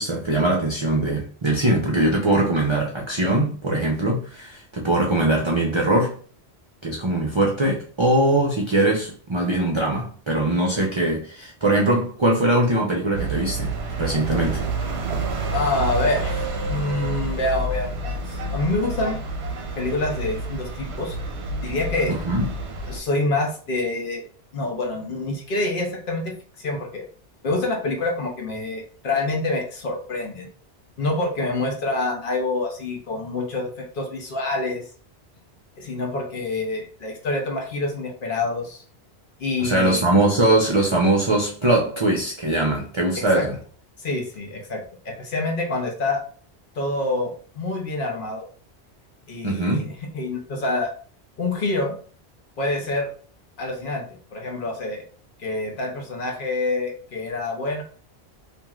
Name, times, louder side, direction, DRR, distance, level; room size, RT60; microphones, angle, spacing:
voice 1, 0.0-6.2 6.8-14.6 22.1-22.5 39.6-43.6 49.4-49.9, right 1 dB, 50° right, 0.3 m, -21 dB
sound 1, 13.1-23.0, right 2 dB, 75° right, 0.8 m, -29 dB
voice 2, 15.5-19.2 19.8-21.2 21.6-22.1 22.9-24.3 24.5-27.0 27.4-30.5 31.0-34.9 35.8-38.8 39.4-40.0 43.2-43.4 44.0-46.2 46.8-48.5 49.3-50.9 51.4-52.0 52.6-53.1 53.6-55.0 55.4-57.8, left 2 dB, 55° left, 0.8 m, -27 dB
3.0 x 2.5 x 2.3 m
omnidirectional pair, 1.1 m